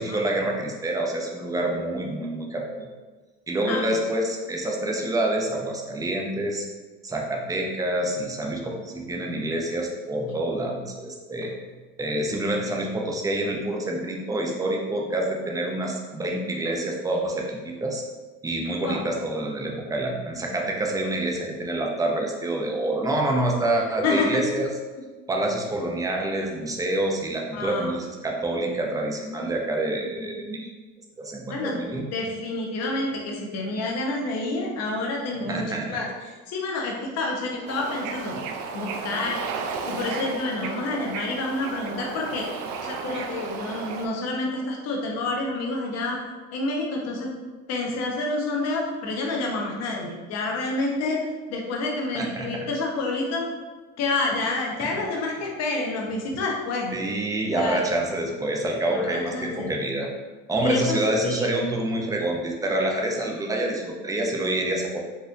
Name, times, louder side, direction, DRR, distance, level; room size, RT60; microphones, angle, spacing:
voice 1, 0.0-2.9 3.5-6.7 7.0-11.5 12.0-18.0 18.4-24.7 25.3-30.7 31.2-32.1 35.5-35.9 52.1-52.7 54.8-54.9 56.9-60.1 60.5-65.0, right 1 dB, 10° right, 0 dB, 0.5 m, -27 dB
voice 2, 24.0-24.4 24.9-25.0 27.5-28.0 31.5-31.8 32.1-36.1 36.5-38.3 38.7-39.4 39.9-42.5 42.8-46.2 46.5-47.3 47.7-51.2 51.5-53.5 54.0-56.9 57.5-57.9 58.9-59.7 60.6-61.6, left 2 dB, 55° left, 0 dB, 0.9 m, -28 dB
Bird / Ocean, 37.7-44.1, right 5 dB, 65° right, 0.5 m, -33 dB
4.2 x 2.5 x 2.5 m, 1.3 s
supercardioid pair, 105°, 31 cm